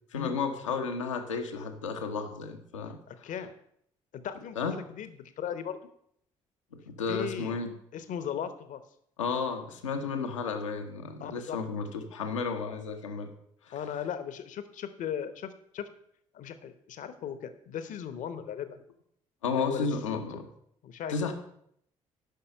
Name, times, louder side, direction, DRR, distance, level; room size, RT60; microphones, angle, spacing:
voice 1, 0.1-3.0 4.6-4.8 6.7-7.7 9.2-13.3 13.7-13.8 19.4-20.4 21.1-21.3, left 5 dB, 80° left, 5 dB, 0.9 m, -32 dB
voice 2, 3.1-3.5 4.1-5.8 7.1-7.6 7.9-8.8 11.2-11.6 13.7-15.9 16.3-18.8 19.5-20.2 20.8-21.3, left 8 dB, 55° left, 11 dB, 0.9 m, -37 dB
10.5 x 5.6 x 5.6 m, 0.71 s
figure-of-eight pair, 45°, 16 cm